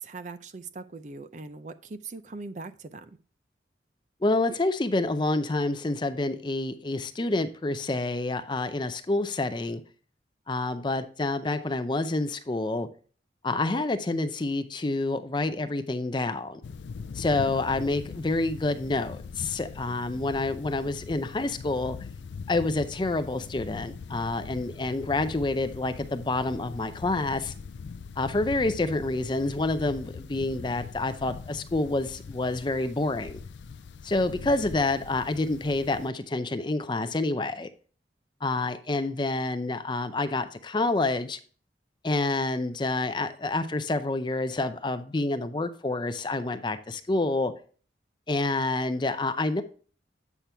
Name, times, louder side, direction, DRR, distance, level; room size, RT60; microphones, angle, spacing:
voice 1, 0.0-3.1, right 3 dB, 40° right, 10 dB, 0.5 m, -40 dB
voice 2, 4.2-9.8 10.5-12.9 13.4-16.6 17.1-22.0 22.5-27.5 28.2-33.4 34.0-37.7 38.4-41.4 42.0-47.5 48.3-49.6, left 2 dB, 25° left, 10 dB, 0.5 m, -28 dB
sound 1, 16.6-36.1, left 5 dB, 80° left, 0.4 m, -41 dB
8.2 x 5.9 x 3.3 m, 0.41 s
head